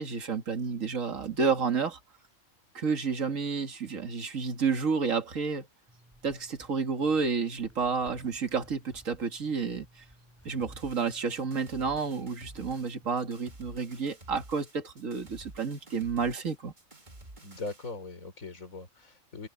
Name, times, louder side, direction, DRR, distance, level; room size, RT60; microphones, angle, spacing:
voice 1, 0.0-2.0 2.7-5.7 6.2-10.0 10.4-16.7, right 5 dB, 70° right, 2.3 m, -30 dB
Zipper (clothing), 5.9-13.2, equal, 10° right, 7.1 m, -58 dB
sound 1, 10.6-17.9, right 1 dB, 35° right, 2.7 m, -51 dB
voice 2, 17.4-19.5, left 3 dB, 80° left, 4.4 m, -40 dB
omnidirectional pair, 1.4 m